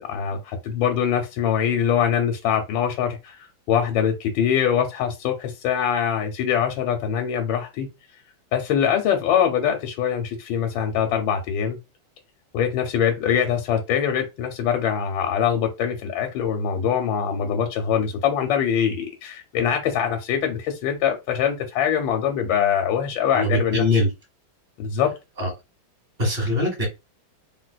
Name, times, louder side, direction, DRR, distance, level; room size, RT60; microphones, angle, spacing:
voice 1, 0.0-7.9 8.5-11.8 12.5-23.8 24.8-25.1, left 8 dB, 75° left, 1.3 m, -23 dB
voice 2, 23.3-24.1 25.4-25.5 26.2-26.9, left 1 dB, 25° right, 1.5 m, -21 dB
3.3 x 2.7 x 2.2 m
omnidirectional pair, 2.3 m